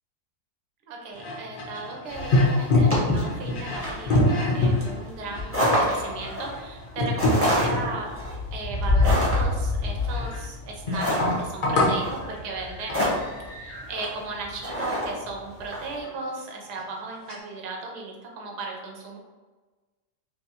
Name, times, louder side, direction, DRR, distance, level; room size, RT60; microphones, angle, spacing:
voice 1, 0.9-8.1 8.5-13.2 13.5-19.2, right 3 dB, 75° right, 0 dB, 1.2 m, -36 dB
sound 1, 1.1-8.2 8.8-10.5 10.9-12.1 12.9-13.1 15.6-15.7 15.9-16.1 16.8-16.9 17.3-17.4, left 2 dB, 80° left, 0.4 m, -26 dB
sound 2, 2.1-15.9, left 1 dB, 15° right, 0.5 m, -27 dB
3.3 x 2.5 x 2.7 m, 1.3 s
omnidirectional pair, 1.8 m